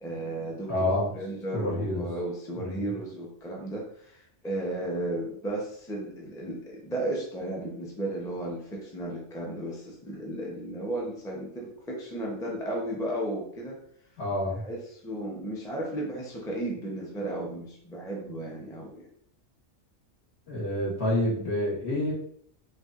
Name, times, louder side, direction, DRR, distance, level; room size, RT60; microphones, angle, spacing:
voice 1, 0.0-13.8 14.6-19.1, right 1 dB, 5° left, -2 dB, 0.5 m, -34 dB
voice 2, 0.7-1.1 1.5-2.0 2.6-2.9 14.2-14.7 20.5-22.1, left 1 dB, 65° left, -5 dB, 1.6 m, -28 dB
4.3 x 2.6 x 2.5 m, 0.65 s
omnidirectional pair, 1.3 m